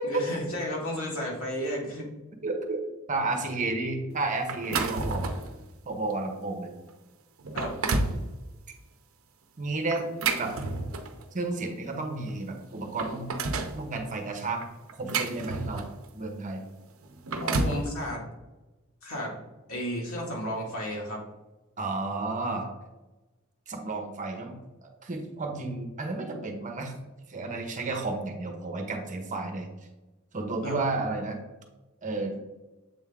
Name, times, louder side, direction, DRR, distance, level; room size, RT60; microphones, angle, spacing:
voice 1, 0.0-2.1 7.5-7.7 17.4-18.3 19.0-19.3 19.7-21.2 30.6-30.8, equal, 85° left, -2 dB, 2.1 m, -33 dB
voice 2, 2.4-2.8 3.1-5.3 5.8-6.7 9.6-10.0 10.3-10.5 11.3-13.3 13.7-14.6 15.0-15.8 16.1-16.6 21.8-22.7 23.7-26.9 27.3-29.7 30.3-31.4 32.0-32.4, right 3 dB, 35° right, 3 dB, 0.9 m, -32 dB
Fridge door open close, 4.5-5.5 6.1-6.3 6.9-7.0 7.4-8.2 9.9-11.2 12.3-12.4 12.7-13.8 14.6-16.0 17.0-17.8, right 3 dB, 70° right, 0.7 m, -30 dB
7.6 x 3.6 x 3.5 m, 1.1 s
head